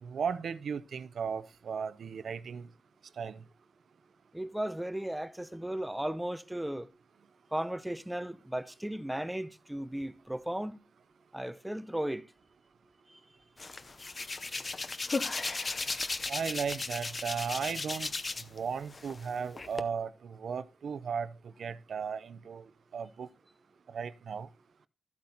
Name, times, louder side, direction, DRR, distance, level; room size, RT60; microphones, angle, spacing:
voice 1, 0.0-2.7 3.2-3.4 16.3-18.1 18.5-21.3 21.6-22.6 22.9-23.3 23.9-24.5, right 6 dB, 65° right, 0.7 m, -36 dB
voice 2, 4.3-6.9 7.5-10.8 11.3-12.3 13.1-13.2, right 1 dB, 5° right, 0.6 m, -35 dB
Hands, 13.6-18.6 18.9-19.8, left 3 dB, 30° left, 0.8 m, -36 dB
13.5 x 8.6 x 4.0 m
wide cardioid pair, 155°, 0 cm